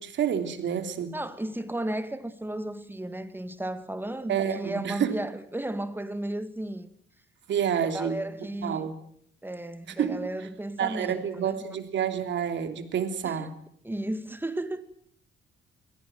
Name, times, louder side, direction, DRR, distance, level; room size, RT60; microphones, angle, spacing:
voice 1, 0.0-1.2 4.3-5.2 7.5-8.3 8.6-9.0 10.0-10.3 10.8-13.5, right 8 dB, 65° right, 3.1 m, -29 dB
voice 2, 1.1-6.9 7.8-8.9 9.4-11.6 13.2-13.5 13.8-14.8, right 1 dB, 10° right, 2.1 m, -34 dB
24.0 x 17.5 x 9.3 m
cardioid pair, 90°, 20 cm